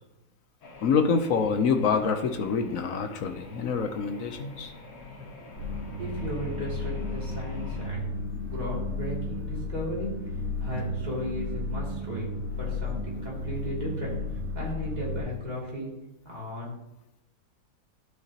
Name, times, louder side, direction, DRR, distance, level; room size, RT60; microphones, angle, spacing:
sound 1, 0.6-7.9, left 2 dB, 80° left, 1.9 m, -46 dB
voice 1, 0.8-4.7, left 5 dB, 60° left, 6 dB, 1.0 m, -26 dB
sound 2, 5.5-15.2, left 2 dB, 30° left, 3.8 m, -33 dB
voice 2, 6.0-8.2 8.5-10.1 10.6-12.3 12.6-15.9 16.2-16.7, equal, 25° right, -5 dB, 2.6 m, -36 dB
12.5 x 6.0 x 2.8 m, 0.92 s
omnidirectional pair, 1.8 m